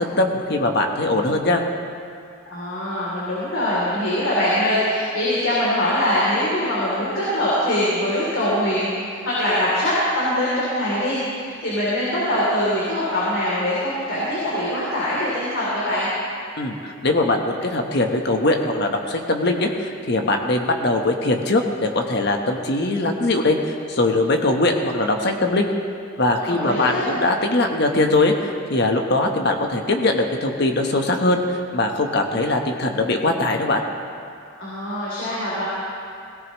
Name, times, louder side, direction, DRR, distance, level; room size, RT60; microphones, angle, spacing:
voice 1, 0.0-1.6 16.6-25.7 26.2-33.8, left 2 dB, 55° left, 3 dB, 1.2 m, -21 dB
voice 2, 2.4-8.9 9.2-16.1 26.5-27.1 34.6-35.7, left 1 dB, 75° left, -8 dB, 3.2 m, -23 dB
17.5 x 17.0 x 3.2 m, 2.4 s
head